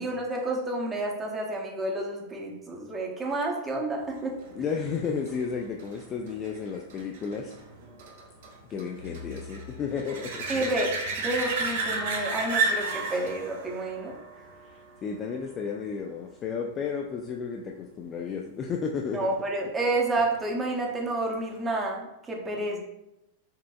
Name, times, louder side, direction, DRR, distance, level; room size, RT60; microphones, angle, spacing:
voice 1, 0.0-4.4 10.5-10.9 11.2-14.1 19.1-22.8, right 2 dB, 15° right, -1 dB, 0.8 m, -30 dB
sound 1, 4.4-15.7 21.3-21.4, right 3 dB, 55° right, 0.6 m, -33 dB
voice 2, 4.5-7.5 8.7-10.5 14.7-19.3, left 6 dB, 30° left, 1 dB, 0.3 m, -33 dB
5.4 x 2.5 x 2.3 m, 0.88 s
figure-of-eight pair, 90°, 0 cm